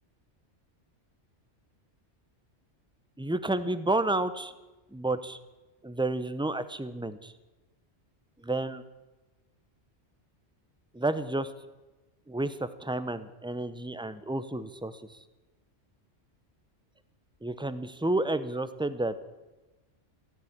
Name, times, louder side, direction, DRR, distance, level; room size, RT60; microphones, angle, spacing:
voice 1, 3.2-4.5 4.9-5.4 5.8-7.2 8.4-8.8 10.9-11.5 12.3-15.2 17.4-19.2, right 2 dB, 5° right, 13 dB, 0.5 m, -30 dB
15.5 x 10.5 x 8.7 m, 1.1 s
omnidirectional pair, 1.2 m